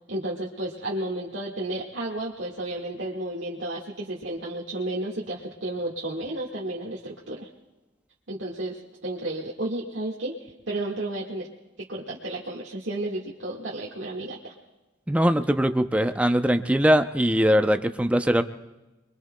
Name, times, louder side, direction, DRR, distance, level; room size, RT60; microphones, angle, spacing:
voice 1, 0.1-7.5 8.3-11.5 11.8-14.5, right 1 dB, 80° right, -5 dB, 1.7 m, -32 dB
voice 2, 15.1-18.4, equal, 5° right, 8 dB, 0.5 m, -21 dB
29.0 x 22.0 x 2.2 m, 1.1 s
head